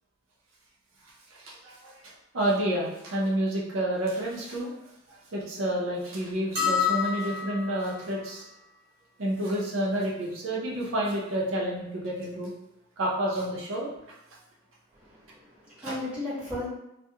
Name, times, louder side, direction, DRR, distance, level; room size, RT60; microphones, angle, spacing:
voice 1, 1.3-4.7 5.1-8.4 9.2-12.5 13.0-13.9 15.8-16.0, right 1 dB, 90° right, -4 dB, 0.6 m, -29 dB
sound 1, 6.5-7.9, left 7 dB, 55° right, 1.2 m, -28 dB
voice 2, 14.9-16.6, left 2 dB, 5° right, -9 dB, 0.9 m, -36 dB
2.3 x 2.2 x 2.8 m, 0.87 s
head